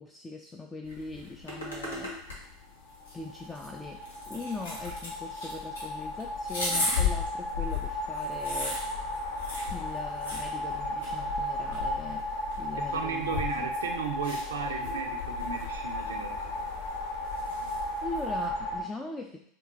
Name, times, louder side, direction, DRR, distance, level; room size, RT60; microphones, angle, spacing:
voice 1, 0.0-2.2 3.1-8.8 9.7-12.3 12.6-13.7 18.0-19.5, left 3 dB, 15° left, 2 dB, 0.3 m, -41 dB
sound 1, 0.8-18.4, left 4 dB, 80° left, 1.0 m, -37 dB
sound 2, 2.9-18.8, left 1 dB, 55° left, 0.6 m, -35 dB
voice 2, 12.8-16.7, right 6 dB, 75° right, 4 dB, 0.4 m, -35 dB
4.3 x 2.3 x 2.6 m, 0.67 s
figure-of-eight pair, 80°, 0 cm